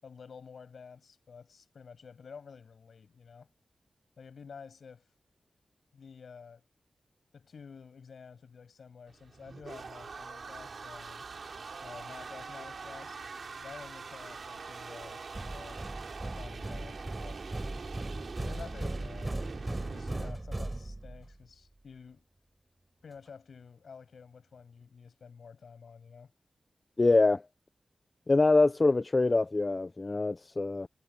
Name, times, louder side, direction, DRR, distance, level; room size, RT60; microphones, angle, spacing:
voice 1, 0.0-3.5 4.2-5.1 5.9-6.6 7.3-11.3 11.8-13.2 13.6-15.8 16.2-17.4 18.4-22.2 23.0-26.3, left 6 dB, 75° left, 7.1 m, -50 dB
sound 1, 9.1-20.3, right 4 dB, 60° right, 2.9 m, -44 dB
sound 2, 15.3-21.4, right 2 dB, 20° right, 5.6 m, -38 dB
voice 2, 27.0-27.4 28.3-30.9, left 3 dB, 30° left, 0.3 m, -24 dB
wide cardioid pair, 125°, 0 cm